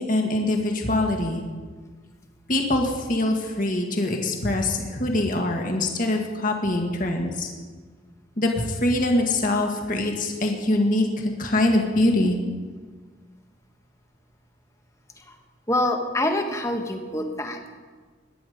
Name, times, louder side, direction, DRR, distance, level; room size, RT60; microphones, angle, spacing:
voice 1, 0.0-1.4 2.5-7.5 8.4-12.4, left 1 dB, 40° left, 2 dB, 1.7 m, -23 dB
voice 2, 15.7-17.7, left 1 dB, 15° left, 4 dB, 1.2 m, -26 dB
19.0 x 10.5 x 5.1 m, 1.5 s
head